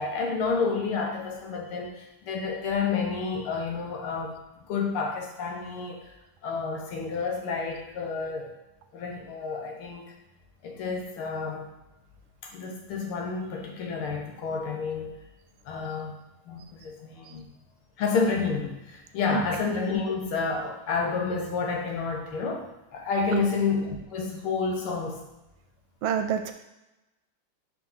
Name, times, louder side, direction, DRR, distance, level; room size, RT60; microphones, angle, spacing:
voice 1, 0.0-4.4 4.7-6.0 6.4-8.5 8.9-10.1 10.6-11.7 12.4-15.1 15.7-16.1 16.5-17.5 18.0-25.2, left 4 dB, 80° left, 0 dB, 1.9 m, -30 dB
voice 2, 26.0-26.5, right 8 dB, 75° right, 6 dB, 1.3 m, -27 dB
4.9 x 3.8 x 5.5 m, 0.96 s
omnidirectional pair, 2.4 m